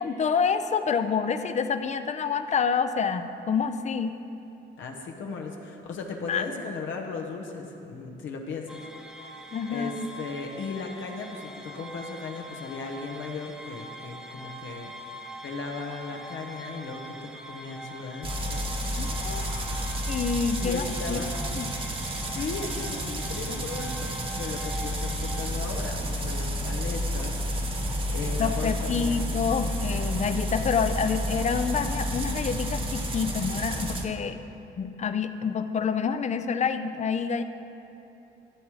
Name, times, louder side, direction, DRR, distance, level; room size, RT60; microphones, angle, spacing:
voice 1, 0.0-4.1 6.3-6.4 9.5-10.1 19.0-19.6 20.1-21.2 21.6-21.7 28.4-34.4 34.8-37.4, left 6 dB, 35° left, 9 dB, 0.5 m, -27 dB
voice 2, 4.8-8.8 9.7-14.9 15.4-18.6 20.6-21.3 22.3-27.5 28.1-29.3, left 4 dB, 75° left, 1 dB, 1.0 m, -36 dB
sound 1, 8.7-25.5, right 1 dB, ahead, 0.9 m, -43 dB
sound 2, 18.2-34.0, equal, 25° right, 1.2 m, -30 dB
14.5 x 7.4 x 3.2 m, 2.8 s
cardioid pair, 90°, 20 cm